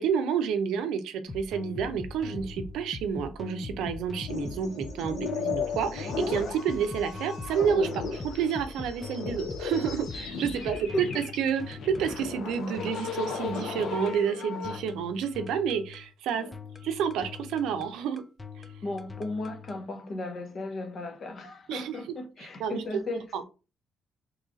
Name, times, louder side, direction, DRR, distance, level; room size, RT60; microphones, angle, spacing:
voice 1, 0.0-16.5 16.8-18.2 21.7-22.0 22.6-22.8 23.3-23.4, right 7 dB, 85° right, 0.5 m, -29 dB
sound 1, 1.3-19.8, left 3 dB, 20° left, 0.4 m, -42 dB
sound 2, 4.3-14.8, left 5 dB, 75° left, 1.0 m, -36 dB
voice 2, 10.5-11.0 16.3-16.5 18.8-23.2, left 2 dB, 50° left, 0.8 m, -36 dB
3.0 x 2.4 x 3.8 m
cardioid pair, 90°, 0 cm